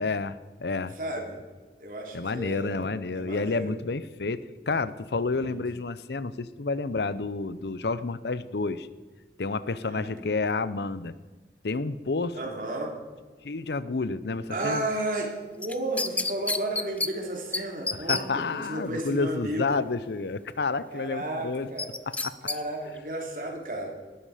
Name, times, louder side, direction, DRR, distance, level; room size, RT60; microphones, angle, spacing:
voice 1, 0.0-0.9 2.1-8.9 9.4-11.1 11.6-12.4 13.4-14.9 17.9-21.7 22.1-22.3, left 3 dB, 75° left, 16 dB, 0.7 m, -30 dB
voice 2, 0.9-1.4 1.8-2.9 3.1-3.7 5.4-5.6 9.8-10.1 12.3-12.9 14.5-18.2 18.5-19.8 20.9-21.9 22.4-23.9, right 1 dB, 50° right, 1 dB, 3.3 m, -33 dB
sound 1, 15.6-17.1 17.5-17.6 17.9-18.2 21.8-22.6 23.0-23.1, left 3 dB, 10° left, 0.4 m, -28 dB
19.0 x 13.0 x 5.0 m, 1.3 s
head